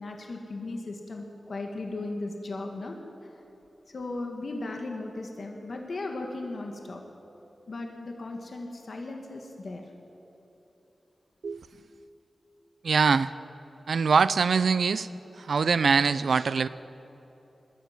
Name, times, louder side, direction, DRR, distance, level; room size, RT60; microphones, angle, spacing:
voice 1, 0.0-3.0 3.2-3.4 3.9-7.0 7.7-9.9 11.7-11.8, left 2 dB, 60° left, 2 dB, 2.2 m, -37 dB
voice 2, 12.8-13.3 13.9-15.1 15.4-16.7, right 5 dB, 75° right, 15 dB, 0.5 m, -23 dB
21.0 x 13.0 x 9.4 m, 3.0 s
wide cardioid pair, 95°, 0 cm